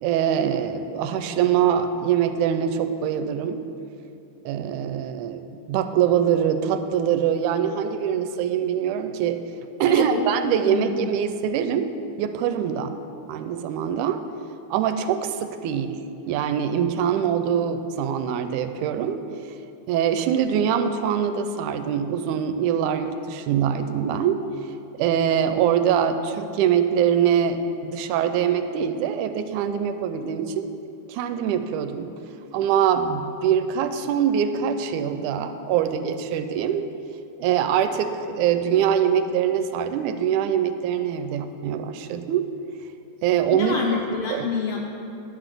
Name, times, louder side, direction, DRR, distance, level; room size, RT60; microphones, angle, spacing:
voice 1, 0.0-3.7 4.5-9.4 9.8-11.9 12.2-12.9 13.3-14.2 14.7-19.2 19.9-24.4 25.0-30.7 31.1-32.1 32.5-36.9 37.4-42.5 43.2-43.7 44.3-44.5, right 8 dB, 80° right, 9 dB, 2.0 m, -23 dB
voice 2, 9.9-11.1 43.5-45.0, left 6 dB, 90° left, 0 dB, 1.3 m, -28 dB
11.0 x 6.0 x 6.7 m, 2.6 s
omnidirectional pair, 3.6 m